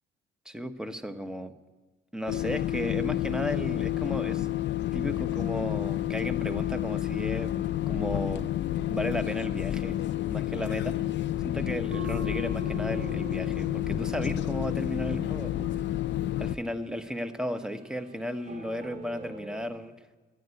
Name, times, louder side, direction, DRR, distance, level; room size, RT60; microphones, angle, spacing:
voice 1, 0.5-1.5 2.1-4.5 4.9-8.5 8.9-10.0 10.3-11.1 11.4-15.7 16.4-19.9, equal, 5° right, 10 dB, 0.9 m, -34 dB
sound 1, 2.3-16.6, left 13 dB, 65° left, 0.5 m, -30 dB
sound 2, 2.8-19.6, right 2 dB, 40° right, 1.9 m, -52 dB
sound 3, 11.9-17.0, right 4 dB, 70° right, 1.2 m, -44 dB
11.0 x 10.5 x 9.4 m, 1.3 s
cardioid pair, 90°, 20 cm